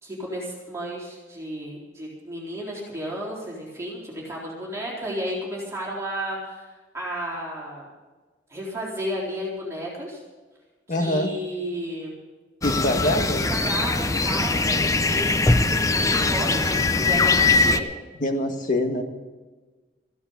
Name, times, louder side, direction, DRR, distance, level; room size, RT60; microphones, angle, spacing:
voice 1, 0.0-6.7 6.9-7.9 8.5-10.2 10.9-12.2 13.3-17.9, equal, 15° right, -5 dB, 3.9 m, -33 dB
voice 2, 10.9-11.3 12.6-13.5 18.2-19.0, left 1 dB, 45° left, 4 dB, 1.7 m, -24 dB
sound 1, 12.6-17.8, left 3 dB, 20° left, 0.6 m, -21 dB
15.0 x 11.0 x 6.9 m, 1.3 s
head